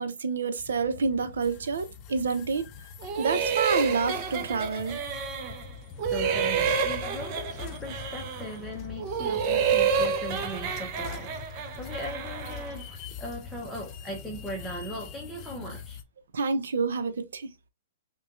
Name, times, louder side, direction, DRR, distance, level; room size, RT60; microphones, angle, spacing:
voice 1, 0.0-2.7 3.2-5.0 16.3-17.5, right 4 dB, 80° right, 0.7 m, -28 dB
sound 1, 0.6-16.0, left 7 dB, 35° left, 0.5 m, -43 dB
sound 2, 3.0-5.7 6.0-8.6 9.0-12.8, right 6 dB, 40° right, 0.7 m, -29 dB
voice 2, 6.1-16.0, equal, ahead, 0.8 m, -39 dB
5.4 x 2.3 x 2.4 m
hypercardioid pair, 135°, 0 cm